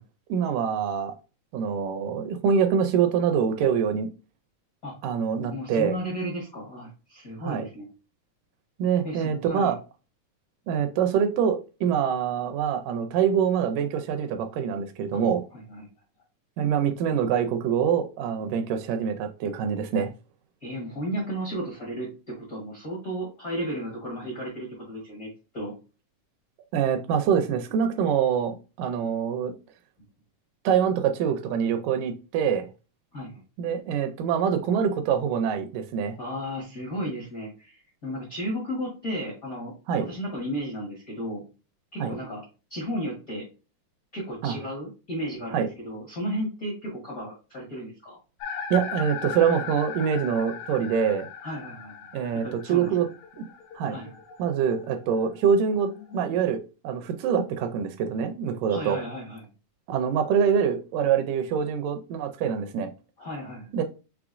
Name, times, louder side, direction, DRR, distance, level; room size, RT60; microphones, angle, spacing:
voice 1, 0.3-1.2 1.5-4.1 5.0-6.0 7.4-7.6 8.8-9.8 10.7-15.4 16.6-20.1 26.7-29.5 30.7-32.7 33.6-36.2 39.9-40.1 42.0-42.1 44.4-44.6 45.5-45.7 48.7-51.3 52.1-53.1 53.4-53.5 53.8-54.0 54.4-56.6 56.8-59.0 59.9-62.9 63.7-63.8, right 7 dB, 80° right, 7 dB, 2.0 m, -25 dB
voice 2, 4.8-5.2 5.5-7.9 9.0-9.7 15.1-15.2 15.5-15.9 20.6-25.3 25.5-25.7 33.1-33.4 36.2-41.4 41.9-42.4 42.7-43.4 44.1-48.2 51.4-51.9 52.4-53.1 53.9-54.2 58.7-59.5 63.2-63.7, equal, 75° left, -4 dB, 0.8 m, -34 dB
sound 1, 48.4-56.4, left 7 dB, 90° left, 2.5 m, -39 dB
6.0 x 3.2 x 2.4 m, 0.32 s
omnidirectional pair, 4.0 m